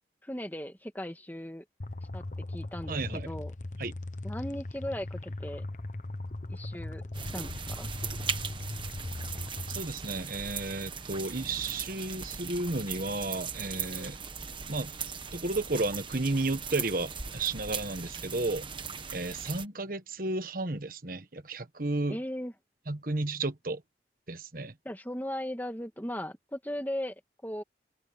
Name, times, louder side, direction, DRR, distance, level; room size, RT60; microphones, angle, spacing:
voice 1, 0.2-1.6 2.1-3.5 4.2-5.6 6.5-7.9 22.1-22.5 24.8-27.2 27.4-27.6, left 1 dB, 10° left, 1.9 m, -37 dB
sound 1, 1.8-9.8, left 2 dB, 45° left, 1.1 m, -39 dB
voice 2, 2.9-3.3 3.8-3.9 9.7-14.2 14.7-14.9 15.3-18.7 19.1-22.2 22.9-23.8 24.3-24.7, right 2 dB, 50° right, 1.4 m, -33 dB
sound 2, 7.1-19.7, right 6 dB, 25° right, 1.2 m, -39 dB
open air
head